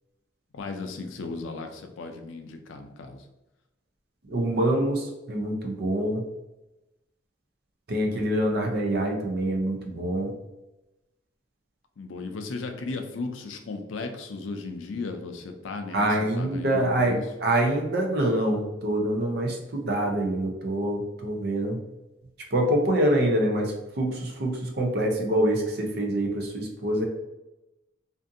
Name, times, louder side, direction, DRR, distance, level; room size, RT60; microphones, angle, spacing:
voice 1, 0.5-3.3 12.0-17.2, left 3 dB, 85° left, 6 dB, 0.4 m, -36 dB
voice 2, 4.3-6.2 7.9-10.3 15.9-21.8 22.5-27.0, right 1 dB, 55° right, 2 dB, 0.5 m, -25 dB
2.5 x 2.5 x 2.5 m, 0.97 s
head